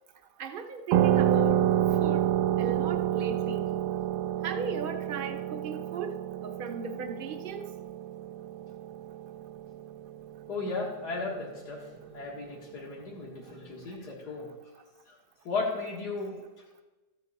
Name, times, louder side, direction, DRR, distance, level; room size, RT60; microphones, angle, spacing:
voice 1, 0.4-2.3 2.6-3.8 4.4-6.2 6.4-7.7, right 4 dB, 45° right, 7 dB, 0.8 m, -36 dB
sound 1, 0.9-10.1, right 11 dB, 85° right, 1.2 m, -28 dB
voice 2, 10.5-11.9 12.1-14.5 15.1-15.2 15.4-16.4, left 3 dB, 80° left, -4 dB, 2.3 m, -35 dB
13.5 x 8.3 x 4.1 m, 1.2 s
omnidirectional pair, 1.7 m